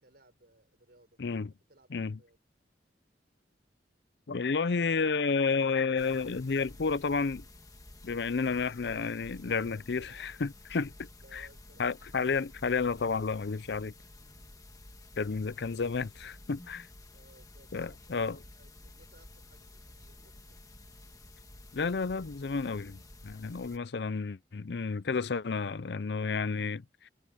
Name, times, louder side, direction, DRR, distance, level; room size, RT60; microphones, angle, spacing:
voice 1, 0.0-1.2 1.7-2.4 8.3-10.3 11.2-11.9 14.2-14.6 17.1-20.6 23.5-24.1, right 1 dB, 60° right, 6.3 m, -61 dB
voice 2, 1.2-1.5 1.9-2.2 4.3-7.4 8.0-11.5 11.8-13.9 15.2-16.9 17.7-18.4 21.7-27.1, left 4 dB, 65° left, 0.6 m, -31 dB
sound 1, 6.0-23.8, left 1 dB, 20° left, 1.6 m, -52 dB
head